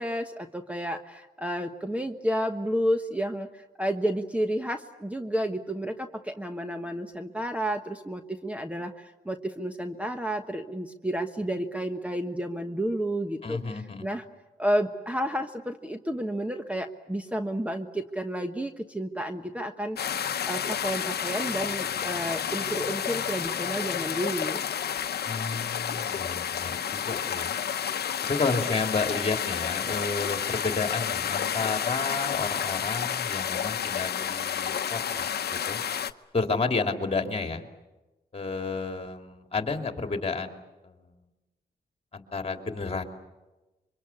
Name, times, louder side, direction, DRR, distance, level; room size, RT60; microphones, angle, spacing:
voice 1, 0.0-14.3 14.6-20.2 20.5-24.6, equal, 10° right, 7 dB, 1.2 m, -31 dB
voice 2, 13.4-14.1 25.2-27.6 28.3-35.8 36.3-37.6 38.3-41.1 42.1-43.0, left 4 dB, 35° left, 5 dB, 2.8 m, -31 dB
sound 1, 20.0-36.1, left 8 dB, 75° left, 0.9 m, -30 dB
26.0 x 24.0 x 8.4 m, 1.1 s
cardioid pair, 80°, 17 cm